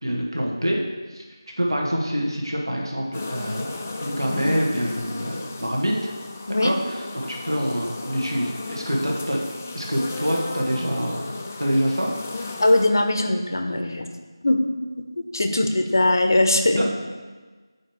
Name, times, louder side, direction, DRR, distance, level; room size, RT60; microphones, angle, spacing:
voice 1, 0.0-0.8 1.1-1.2 1.6-5.9 6.5-9.4 9.7-11.3 11.6-12.5 16.8-16.9, equal, 75° right, -1 dB, 1.8 m, -26 dB
sound 1, 2.8-8.9 9.3-10.4 10.7-13.6, right 1 dB, 45° right, 1.5 m, -47 dB
sound 2, 3.1-12.9, left 3 dB, 20° left, 0.4 m, -35 dB
voice 2, 12.6-14.1 14.4-14.6 15.1-16.8, left 2 dB, 50° left, 5 dB, 0.7 m, -20 dB
8.5 x 3.2 x 6.5 m, 1.4 s
figure-of-eight pair, 170°, 2 cm